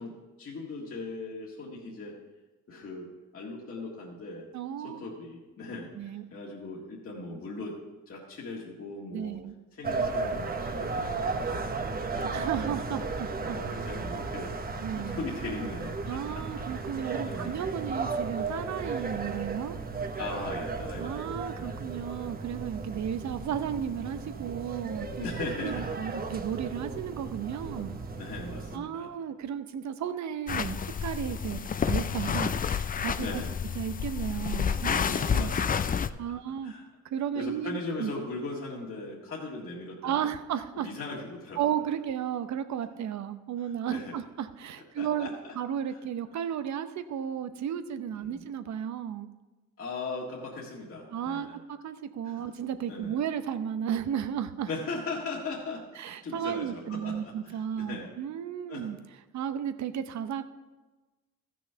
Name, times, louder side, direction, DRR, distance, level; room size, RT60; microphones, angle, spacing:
voice 1, 0.0-2.2 2.7-3.1 3.3-4.5 4.8-7.8 8.1-9.4 9.7-14.5 15.0-16.2 16.8-17.0 17.2-17.5 20.2-21.2 21.7-21.8 25.2-25.9 28.1-29.1 31.4-31.6 33.2-33.5 35.3-36.0 36.6-36.9 37.3-40.3 40.7-41.6 43.9-44.2 45.0-45.5 45.9-46.0 48.1-48.5 49.8-51.6 52.2-52.4 52.9-53.2 54.7-58.1 58.7-58.9, left 3 dB, 45° left, -4 dB, 1.8 m, -39 dB
voice 2, 4.5-5.0 5.9-6.2 9.1-9.5 12.2-13.6 14.8-15.2 16.1-19.8 21.0-25.3 25.6-27.9 28.7-31.6 31.9-33.4 33.7-35.5 36.2-36.7 37.1-38.1 40.0-40.9 41.6-45.3 45.6-49.3 51.1-54.7 56.0-59.0 59.3-60.4, right 9 dB, 65° right, 11 dB, 0.8 m, -34 dB
sound 1, 9.8-28.8, right 4 dB, 30° right, 1.0 m, -35 dB
sound 2, 30.5-36.1, left 7 dB, 30° left, 0.4 m, -29 dB
14.0 x 6.3 x 5.6 m, 1.2 s
cardioid pair, 90°, 30 cm